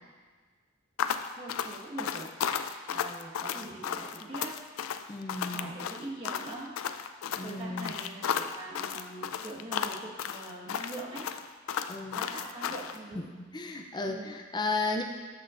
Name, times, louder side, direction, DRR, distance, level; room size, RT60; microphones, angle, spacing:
sound 1, 1.0-13.0, left 8 dB, 75° left, 0.3 m, -34 dB
voice 1, 1.3-2.6 2.9-4.6 5.5-6.7 7.4-11.2 12.1-13.3 14.0-14.3, right 2 dB, 25° right, -5 dB, 1.4 m, -42 dB
voice 2, 5.1-5.7 7.4-7.9 11.9-12.2 13.2-15.0, left 3 dB, 20° left, 3 dB, 0.5 m, -34 dB
13.5 x 5.7 x 2.5 m, 1.5 s
head